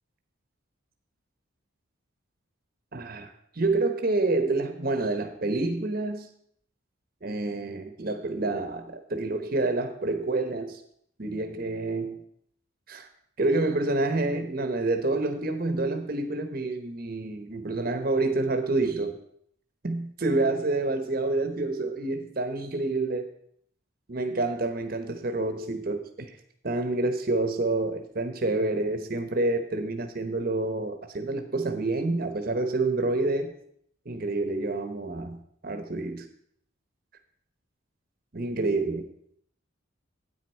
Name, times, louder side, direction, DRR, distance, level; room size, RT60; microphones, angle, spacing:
voice 1, 2.9-6.3 7.2-10.8 11.2-12.2 12.9-13.1 13.4-19.2 19.8-23.3 24.1-26.4 26.6-33.5 34.0-36.3 38.3-39.0, right 2 dB, 45° right, 7 dB, 1.0 m, -28 dB
9.6 x 9.0 x 4.4 m, 0.65 s
head